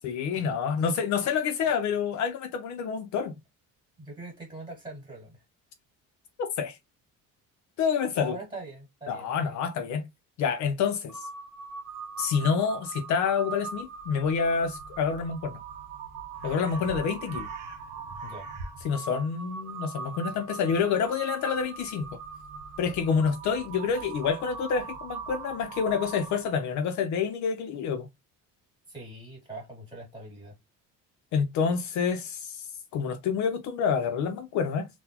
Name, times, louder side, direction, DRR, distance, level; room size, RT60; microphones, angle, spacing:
voice 1, 0.0-3.3 6.4-6.8 7.8-8.4 9.1-10.1 10.4-11.3 12.2-15.6 16.4-17.5 18.8-22.1 22.8-28.1 31.3-34.9, left 6 dB, 60° left, 0.5 m, -28 dB
voice 2, 4.0-5.4 8.2-9.6 16.7-17.0 18.2-18.5 28.9-30.5, right 2 dB, 15° right, 1.9 m, -42 dB
Crow, 11.1-26.6, right 5 dB, 65° right, 0.8 m, -40 dB
3.9 x 2.1 x 2.8 m
cardioid pair, 170°, 33 cm